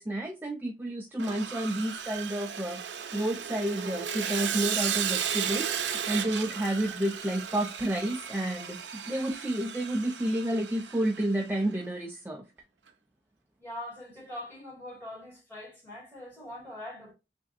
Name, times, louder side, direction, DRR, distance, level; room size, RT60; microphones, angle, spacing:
voice 1, 0.0-2.8 3.1-12.4, right 1 dB, 10° right, 0.4 m, -30 dB
Sawing, 1.2-11.4, right 8 dB, 85° right, 0.6 m, -35 dB
voice 2, 13.6-17.1, left 1 dB, 10° left, 2.1 m, -42 dB
3.4 x 3.1 x 2.6 m
head